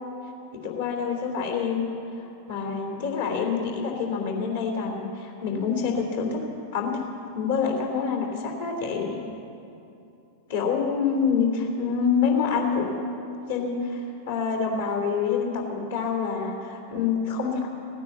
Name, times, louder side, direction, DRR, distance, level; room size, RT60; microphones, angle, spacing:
voice 1, 0.6-1.9 2.5-6.4 6.7-6.9 7.3-9.1 10.5-13.0 13.5-17.7, left 6 dB, 65° left, 1 dB, 3.2 m, -26 dB
17.5 x 9.9 x 8.1 m, 2.7 s
figure-of-eight pair, 90°, 0 cm